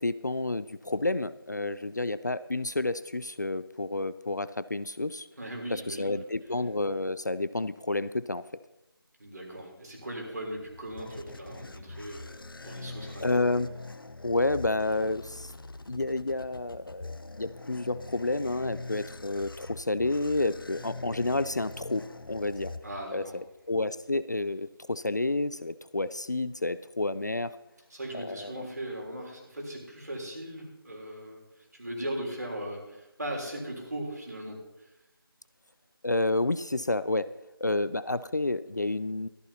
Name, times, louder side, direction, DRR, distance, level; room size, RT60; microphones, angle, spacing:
voice 1, 0.0-5.3 5.7-8.4 13.2-13.7 14.2-15.5 15.9-17.1 17.4-22.7 23.1-27.5 28.1-28.7 36.0-37.3 37.6-39.3, left 2 dB, 50° left, 16 dB, 0.4 m, -30 dB
voice 2, 5.4-6.2 9.2-12.3 12.6-13.3 22.8-23.4 27.9-34.9, right 1 dB, 45° right, 0 dB, 3.6 m, -38 dB
sound 1, 10.5-23.4, left 2 dB, 65° left, 0.7 m, -44 dB
15.0 x 14.0 x 2.9 m, 0.95 s
figure-of-eight pair, 175°, 13 cm